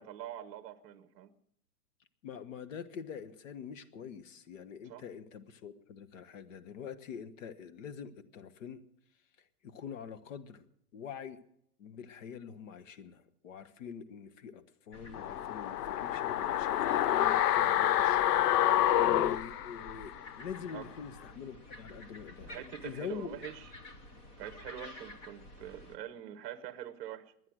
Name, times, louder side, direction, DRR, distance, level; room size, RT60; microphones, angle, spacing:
voice 1, 0.0-1.3 4.8-5.0 18.6-18.8 20.7-20.9 22.4-23.7 24.4-27.3, right 11 dB, 40° right, 11 dB, 1.1 m, -44 dB
voice 2, 2.2-8.8 9.6-10.6 10.9-11.4 11.8-18.7 19.0-23.4, left 7 dB, 55° left, 11 dB, 1.4 m, -45 dB
sound 1, 14.9-26.0, left 1 dB, 10° left, 0.6 m, -51 dB
sound 2, 15.1-20.3 20.6-20.7, left 12 dB, 75° left, 0.7 m, -28 dB
22.0 x 9.7 x 6.3 m, 0.72 s
hypercardioid pair, 155°, 47 cm